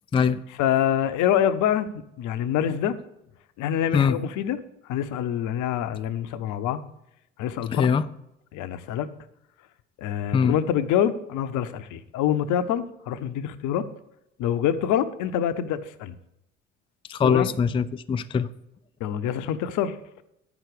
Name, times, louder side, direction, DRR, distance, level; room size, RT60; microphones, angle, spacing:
voice 1, 0.6-1.9 2.2-3.0 3.6-4.6 4.9-6.8 7.4-7.9 8.5-9.1 10.0-13.9 14.4-16.1 17.2-17.5 19.0-20.0, left 10 dB, 65° left, 12 dB, 0.8 m, -25 dB
voice 2, 7.7-8.1 10.3-10.6 17.1-18.5, left 6 dB, 15° left, 11 dB, 0.4 m, -22 dB
8.9 x 6.0 x 6.6 m, 0.81 s
hypercardioid pair, 60°, 33 cm